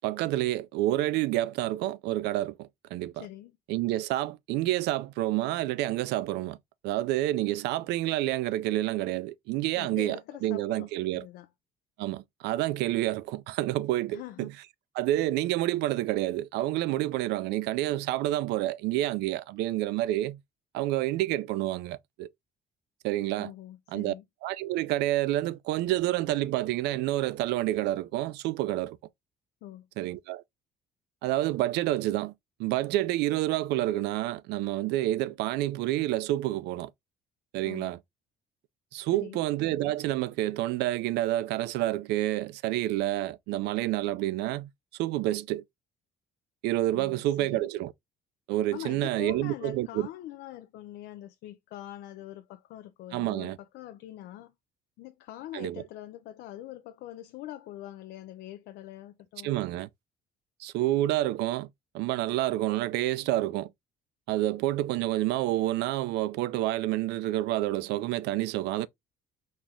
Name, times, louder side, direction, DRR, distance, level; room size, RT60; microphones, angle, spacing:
voice 1, 0.0-3.3 3.7-6.6 6.8-11.3 12.0-14.5 14.9-20.4 20.7-22.3 23.0-23.5 23.9-24.1 24.4-29.0 30.0-30.4 31.2-32.3 32.6-36.9 37.5-38.0 38.9-44.7 45.0-45.6 46.6-47.9 48.5-50.1 53.1-53.6 55.5-55.8 59.4-59.9 60.6-61.7 61.9-63.7 64.3-68.9, right 15 dB, 85° right, 0.4 m, -28 dB
voice 2, 3.1-3.6 9.8-10.9 11.1-11.5 14.1-14.5 23.4-24.2 29.6-29.9 37.6-37.9 39.1-39.4 46.9-47.7 48.7-54.5 55.0-59.5, left 13 dB, 80° left, 0.4 m, -43 dB
4.3 x 2.4 x 3.3 m
cardioid pair, 110°, 17 cm